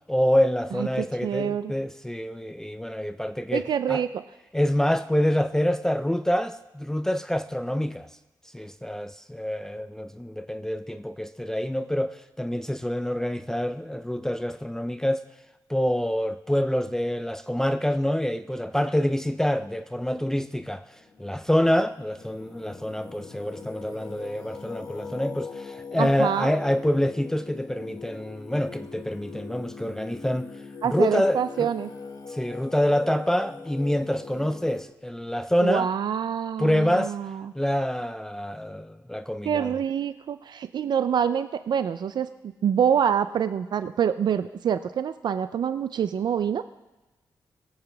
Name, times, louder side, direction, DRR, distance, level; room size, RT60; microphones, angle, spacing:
voice 1, 0.1-4.0 4.5-8.1 8.5-15.2 15.7-20.9 21.2-30.5 30.8-31.7 32.3-35.9 36.6-37.2 37.5-39.8, equal, 5° left, 0.4 m, -26 dB
voice 2, 0.7-1.7 3.5-4.2 26.0-26.5 30.8-31.9 35.6-37.5 39.4-46.6, right 8 dB, 70° right, 0.4 m, -26 dB
Singing, 21.0-34.8, left 5 dB, 55° left, 1.4 m, -41 dB
21.5 x 8.0 x 3.4 m
wide cardioid pair, 125°, 8 cm